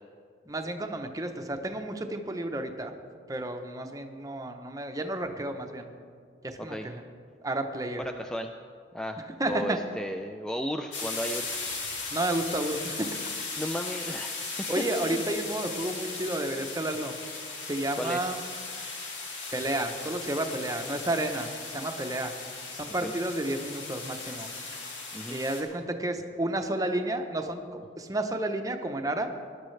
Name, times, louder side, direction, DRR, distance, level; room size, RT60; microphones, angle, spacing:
voice 1, 0.5-2.9 3.3-5.9 6.4-7.0 7.4-8.0 9.4-9.8 12.1-13.1 14.7-17.1 17.7-18.4 19.5-22.3 22.7-24.5 25.3-29.3, right 1 dB, 20° right, 5 dB, 0.7 m, -31 dB
voice 2, 8.0-8.5 8.9-11.5 13.6-14.5 15.0-15.2 17.9-18.3 23.0-23.1 25.1-25.4, equal, 5° left, 5 dB, 0.3 m, -34 dB
sound 1, 10.9-25.6, left 4 dB, 90° left, 2.1 m, -37 dB
18.5 x 11.0 x 3.2 m, 2.2 s
head